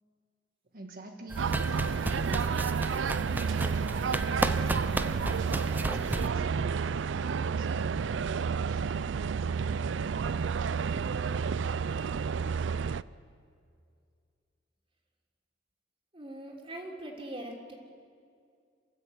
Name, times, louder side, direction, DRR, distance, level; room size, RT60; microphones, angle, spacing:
voice 1, 0.7-8.9 9.2-9.8, right 1 dB, 55° right, 3 dB, 1.5 m, -47 dB
sound 1, 1.3-6.3, right 1 dB, 10° right, 0.6 m, -34 dB
sound 2, 1.4-13.0, right 6 dB, 85° right, 0.4 m, -30 dB
sound 3, 3.2-13.1, left 1 dB, 75° left, 2.2 m, -57 dB
voice 2, 16.1-17.7, right 1 dB, 30° right, 0 dB, 3.6 m, -41 dB
28.5 x 13.5 x 8.2 m, 2.3 s
head